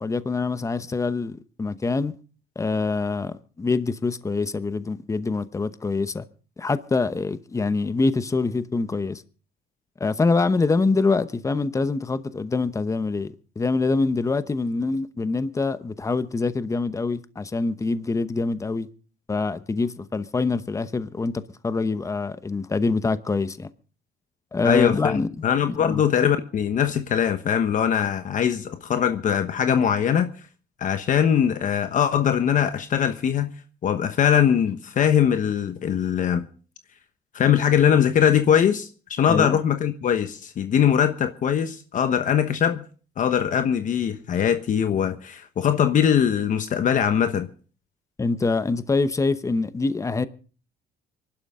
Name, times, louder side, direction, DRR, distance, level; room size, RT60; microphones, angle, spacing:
voice 1, 0.0-2.1 2.6-6.3 6.6-9.2 10.0-18.9 19.3-23.7 24.5-25.3 25.7-26.0 39.3-39.6 48.2-50.3, left 3 dB, 20° left, 0.9 m, -25 dB
voice 2, 24.6-30.3 30.8-33.5 33.8-36.5 37.3-42.8 43.2-47.5, left 8 dB, 50° left, 1.1 m, -21 dB
25.0 x 11.5 x 3.7 m
cardioid pair, 110°, 17 cm